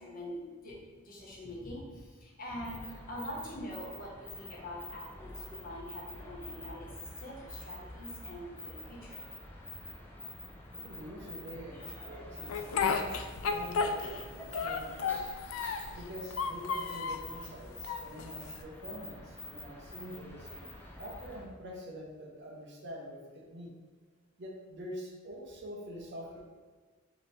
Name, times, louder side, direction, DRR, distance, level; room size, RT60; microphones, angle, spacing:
voice 1, 0.0-9.2, equal, 45° left, -4 dB, 1.0 m, -44 dB
sound 1, 2.6-21.5, left 2 dB, 10° left, 0.5 m, -47 dB
voice 2, 10.7-13.0 13.3-15.2 15.9-23.7 24.4-26.4, equal, 55° right, -1 dB, 0.7 m, -46 dB
Speech, 12.5-14.2 14.5-15.9 16.3-17.3 17.8-18.6, left 5 dB, 85° left, 0.3 m, -32 dB
3.1 x 2.9 x 4.1 m, 1.4 s
head